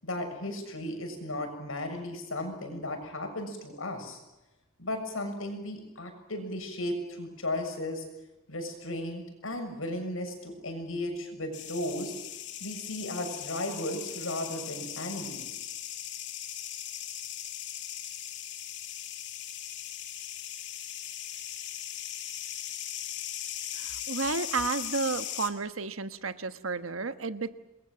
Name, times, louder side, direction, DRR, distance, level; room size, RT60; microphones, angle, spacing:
voice 1, 0.0-4.2 4.8-8.0 8.5-12.1 12.6-15.6, left 1 dB, 80° left, 5 dB, 7.0 m, -35 dB
sound 1, 11.5-25.5, left 11 dB, 60° left, 2.2 m, -39 dB
voice 2, 23.7-27.5, right 4 dB, 80° right, 10 dB, 1.3 m, -32 dB
27.5 x 22.0 x 7.8 m, 1.0 s
head